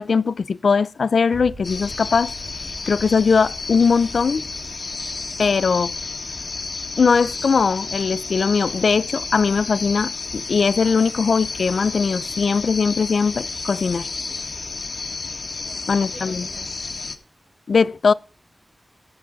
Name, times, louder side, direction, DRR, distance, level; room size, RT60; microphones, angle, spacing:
voice 1, 0.0-2.3 2.9-4.4 5.4-5.9 7.0-14.1 15.9-16.5 17.7-18.1, left 5 dB, 90° left, 0.6 m, -20 dB
sound 1, 1.3-12.6 12.9-13.0, right 2 dB, 60° right, 4.2 m, -46 dB
sound 2, 1.6-17.2, left 3 dB, 65° left, 2.2 m, -31 dB
voice 2, 15.4-16.9, right 2 dB, 80° right, 6.3 m, -46 dB
17.5 x 11.0 x 4.1 m
wide cardioid pair, 90°, 0 cm